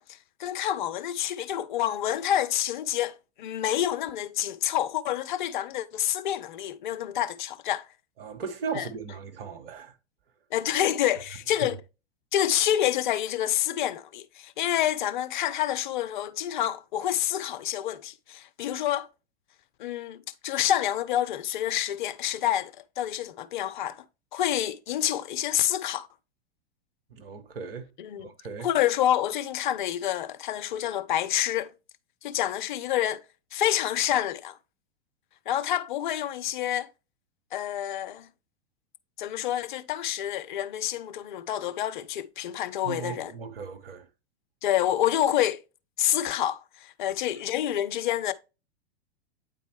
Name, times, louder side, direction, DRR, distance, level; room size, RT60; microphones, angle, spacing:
voice 1, 0.0-7.9 8.7-8.9 10.5-11.8 12.3-19.1 19.8-22.7 23.0-24.0 24.3-26.1 28.0-28.3 28.6-31.7 32.2-33.2 33.5-34.6 35.5-36.9 37.5-38.3 39.2-43.3 44.6-45.6 46.0-48.3, left 12 dB, 45° left, 0.6 m, -28 dB
voice 2, 8.2-9.9 11.6-11.7 27.1-27.9 28.2-28.7 42.8-44.0, right 6 dB, 60° right, 1.4 m, -37 dB
9.0 x 4.2 x 3.1 m
figure-of-eight pair, 100°, 33 cm